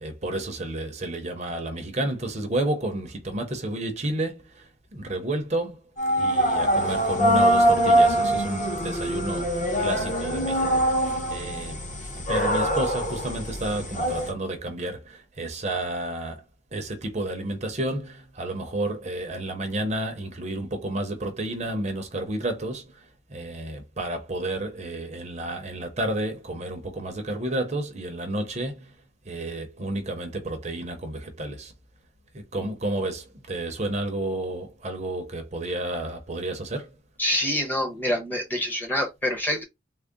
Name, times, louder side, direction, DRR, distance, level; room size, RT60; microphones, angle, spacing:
voice 1, 0.0-5.8 6.2-11.0 11.3-11.8 12.3-16.4 16.7-28.9 29.2-31.7 32.3-36.9, right 1 dB, 35° right, 0.6 m, -31 dB
sound 1, 6.0-14.3, right 1 dB, 40° left, 0.9 m, -23 dB
voice 2, 37.2-39.6, left 1 dB, 10° left, 0.8 m, -26 dB
3.6 x 2.0 x 3.6 m
head